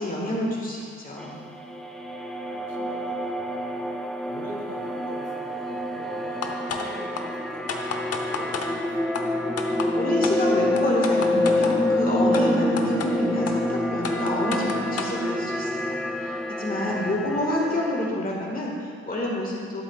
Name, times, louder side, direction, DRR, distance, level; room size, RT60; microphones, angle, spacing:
voice 1, 0.0-1.4 9.9-19.8, left 1 dB, 30° left, -3 dB, 1.8 m, -28 dB
sound 1, 1.2-18.1, left 1 dB, ahead, 0.4 m, -27 dB
voice 2, 2.5-3.6 4.3-9.1 17.2-17.6, right 1 dB, 55° right, 0 dB, 1.8 m, -42 dB
sound 2, 6.4-6.9 7.2-7.3 7.7-8.7 9.1-9.2 9.6-9.9 10.2-10.4 10.8-11.7 12.3-12.4 12.8-13.1 13.5-13.6 14.0-15.2, left 6 dB, 55° left, 0.8 m, -31 dB
12.0 x 7.2 x 2.4 m, 2.2 s
cardioid pair, 90°, 30 cm